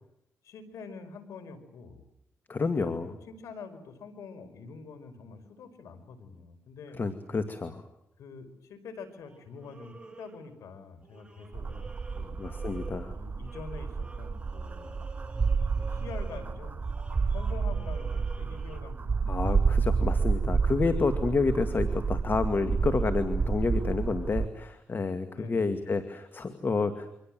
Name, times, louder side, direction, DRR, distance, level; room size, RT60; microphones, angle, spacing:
voice 1, 0.4-2.0 2.8-7.0 8.2-12.4 13.1-15.1 15.8-20.4 25.3-25.9, left 5 dB, 85° left, 8 dB, 5.1 m, -46 dB
voice 2, 2.5-3.1 7.0-7.8 12.4-13.1 19.3-27.1, left 4 dB, 40° left, 9 dB, 2.2 m, -29 dB
sound 1, 9.0-10.7 11.0-18.8, right 3 dB, 20° right, 4.0 m, -50 dB
sound 2, 11.5-24.5, right 5 dB, 35° right, 1.0 m, -29 dB
28.0 x 25.0 x 7.7 m, 0.79 s
cardioid pair, 85°, 5 cm